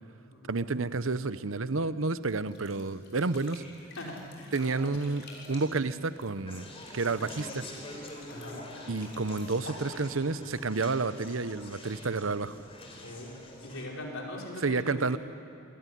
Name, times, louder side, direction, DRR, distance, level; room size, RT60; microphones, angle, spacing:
voice 1, 0.5-3.6 4.5-6.7 6.9-7.6 8.9-12.5 14.6-15.2, right 3 dB, 75° right, 14 dB, 0.9 m, -30 dB
sound 1, 2.4-10.6, left 3 dB, 55° left, 6.5 m, -51 dB
voice 2, 4.0-5.1 8.3-8.6 13.0-13.3 13.6-15.2, left 1 dB, 75° left, -2 dB, 5.2 m, -41 dB
Conversation, 6.5-13.9, left 1 dB, 30° left, 4.0 m, -45 dB
27.0 x 22.0 x 10.0 m, 2.6 s
head